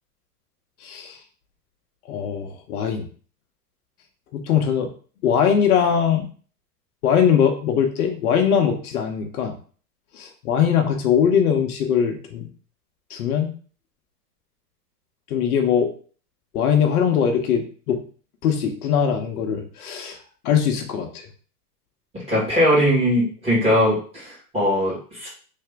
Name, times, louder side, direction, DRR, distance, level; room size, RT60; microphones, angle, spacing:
voice 1, 0.8-1.2 2.1-3.1 4.3-4.9 5.2-6.2 7.0-9.5 10.1-12.5 13.1-13.5 15.3-15.9 16.5-18.0 18.4-20.2 20.4-21.3, left 8 dB, 65° left, 4 dB, 0.8 m, -21 dB
voice 2, 22.3-25.3, equal, 10° right, -8 dB, 1.8 m, -20 dB
3.3 x 2.8 x 3.4 m, 0.41 s
hypercardioid pair, 130°, 48 cm